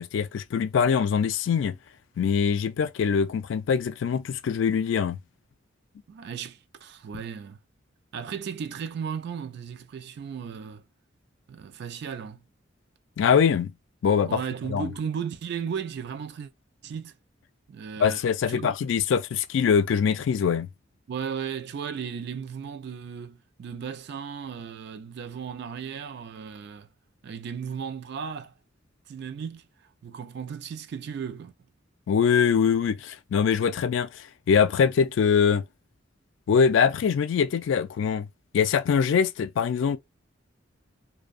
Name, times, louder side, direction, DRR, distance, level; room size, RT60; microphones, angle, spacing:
voice 1, 0.0-1.8 2.2-5.2 13.2-13.7 14.0-14.4 14.7-14.9 18.0-20.7 32.1-35.6 36.5-38.3 38.5-40.0, left 6 dB, 70° left, 0.3 m, -23 dB
voice 2, 6.1-7.6 8.1-10.8 11.5-12.4 14.3-16.5 16.8-17.1 17.7-18.2 18.5-18.9 21.1-26.9 27.2-28.5 29.1-29.6 30.0-31.5, right 7 dB, 55° right, 0.3 m, -35 dB
2.6 x 2.1 x 2.4 m
head